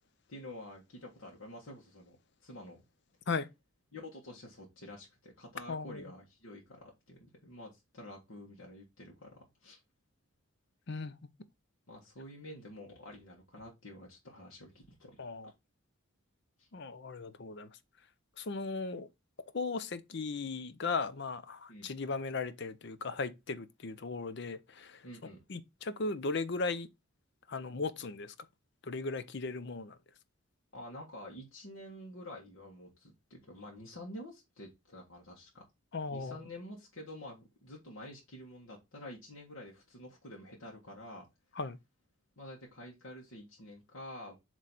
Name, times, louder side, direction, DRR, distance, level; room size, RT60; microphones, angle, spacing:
voice 1, 0.3-2.2 2.4-2.8 3.9-9.8 11.9-15.5 16.6-16.7 21.7-21.9 25.0-25.4 30.7-35.6 36.1-41.3 42.4-44.3, left 1 dB, 80° left, 1.7 m, -49 dB
voice 2, 5.7-6.0 10.9-11.1 15.2-15.5 16.7-17.7 18.4-19.1 19.5-24.9 25.5-26.9 27.5-28.3 28.9-29.9 35.9-36.3 41.6-41.8, left 4 dB, 55° left, 0.6 m, -37 dB
7.5 x 3.2 x 4.1 m
head